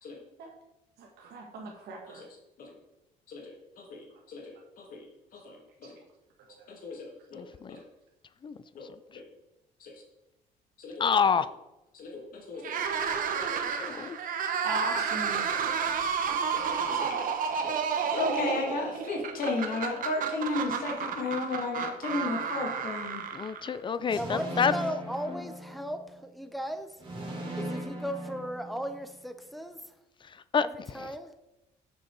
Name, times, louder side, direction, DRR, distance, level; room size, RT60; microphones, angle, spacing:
voice 1, 1.0-2.2 6.6-6.7 14.6-15.5, right 3 dB, 75° right, 0 dB, 1.4 m, -37 dB
voice 2, 3.3-5.1 5.3-6.0 6.7-7.8 8.7-9.2 9.8-9.9 10.8-11.1 11.9-12.8 13.4-13.7 14.0-14.1 16.3-17.3 17.6-23.2 24.1-24.2, left 3 dB, 55° left, 0 dB, 2.0 m, -35 dB
voice 3, 7.3-7.8 8.4-8.6 11.0-11.5 13.8-14.2 23.3-24.7 25.3-25.4 30.3-30.7 30.9-31.1, left 6 dB, 30° left, 15 dB, 0.4 m, -28 dB
sound 1, 12.6-23.9, right 6 dB, 55° right, 1.0 m, -31 dB
voice 4, 24.1-26.9 27.6-29.8 30.6-31.3, equal, ahead, 7 dB, 0.7 m, -36 dB
sound 2, 24.1-26.2 27.0-29.2, right 1 dB, 30° right, 2.2 m, -38 dB
6.6 x 5.5 x 4.6 m, 0.93 s
cardioid pair, 110°, 17 cm